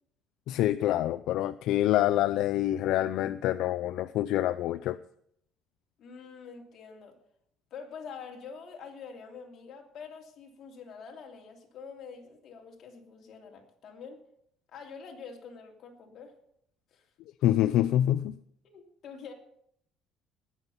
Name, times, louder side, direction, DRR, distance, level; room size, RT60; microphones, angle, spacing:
voice 1, 0.5-5.0 17.4-18.4, left 13 dB, 70° left, 13 dB, 0.4 m, -26 dB
voice 2, 6.0-7.1 7.7-14.2 14.7-16.3 16.9-17.0 18.7-19.3, left 6 dB, 45° left, 1 dB, 2.8 m, -46 dB
19.0 x 7.1 x 5.7 m, 0.70 s
cardioid pair, 155°, 0 cm